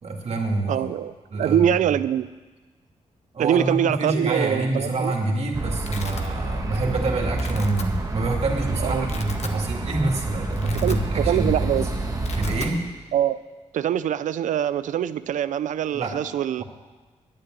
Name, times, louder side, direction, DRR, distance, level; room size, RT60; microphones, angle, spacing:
voice 1, 0.0-0.9 1.3-1.9 3.3-11.9 12.3-12.8 15.9-16.2 16.6-16.7, right 2 dB, 55° right, 1 dB, 2.4 m, -26 dB
voice 2, 0.7-1.1 1.4-2.3 3.4-5.1 8.8-9.1 10.8-11.9 13.1-13.4 13.7-16.6, right 10 dB, 90° right, 15 dB, 0.5 m, -23 dB
Domestic sounds home sounds, 5.1-5.2 5.4-6.3 6.7-7.0 7.3-7.8 8.5-8.6 8.9-9.6 10.0-10.1 10.4-11.4 11.6-11.8 12.1-12.7, left 5 dB, 60° left, 1.2 m, -39 dB
sound 1, 5.5-12.7, right 2 dB, 30° right, 1.3 m, -28 dB
10.5 x 9.1 x 9.2 m, 1.3 s
cardioid pair, 105°, 13 cm